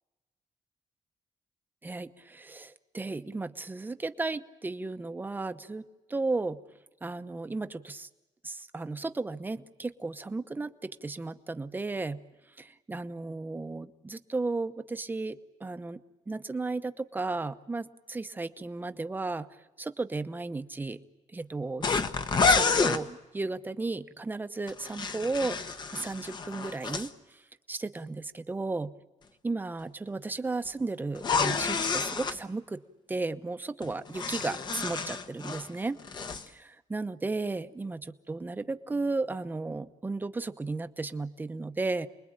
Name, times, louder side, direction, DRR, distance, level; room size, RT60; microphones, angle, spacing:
voice 1, 1.8-6.6 7.0-8.1 8.4-12.2 12.6-16.0 16.3-19.5 19.8-21.0 21.3-22.1 22.4-27.1 27.7-28.9 29.4-32.8 33.1-36.0 36.5-42.1, right 3 dB, 15° right, 9 dB, 0.9 m, -34 dB
sound 1, 21.8-23.0 24.7-27.1 31.2-32.4 33.8-35.7 36.0-36.4, left 5 dB, 35° left, 1.1 m, -29 dB
29.0 x 21.5 x 8.9 m, 1.1 s
wide cardioid pair, 170°, 13 cm